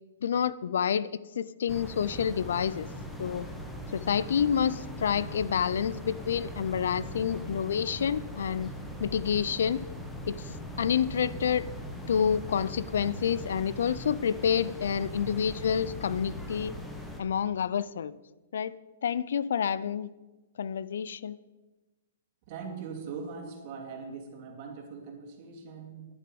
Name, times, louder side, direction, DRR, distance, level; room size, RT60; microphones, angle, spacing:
voice 1, 0.2-1.1 1.4-2.9 3.2-3.5 3.9-8.7 9.0-9.8 10.3-10.4 10.8-11.7 12.1-16.7 17.2-18.1 18.5-18.7 19.0-20.1 20.6-21.4, left 8 dB, 75° left, 18 dB, 0.5 m, -28 dB
sound 1, 1.7-17.2, equal, 5° left, 1.3 m, -40 dB
voice 2, 22.5-26.1, right 5 dB, 40° right, 2 dB, 2.6 m, -41 dB
10.5 x 10.5 x 5.2 m, 1.1 s
hypercardioid pair, 150°, 0 cm